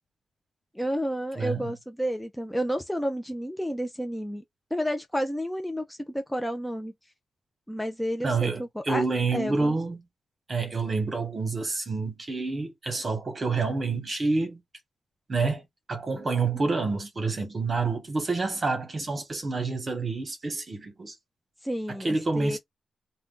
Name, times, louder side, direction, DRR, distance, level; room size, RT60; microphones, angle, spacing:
voice 1, 0.7-4.4 4.7-6.9 7.7-9.0 9.3-9.8 16.5-16.6 21.6-22.6, equal, 5° left, 0.4 m, -31 dB
voice 2, 1.4-1.7 8.2-10.0 10.5-14.6 15.3-15.6 15.9-21.1 22.0-22.6, right 3 dB, 30° right, 1.1 m, -28 dB
2.5 x 2.2 x 3.6 m
wide cardioid pair, 135°, 0 cm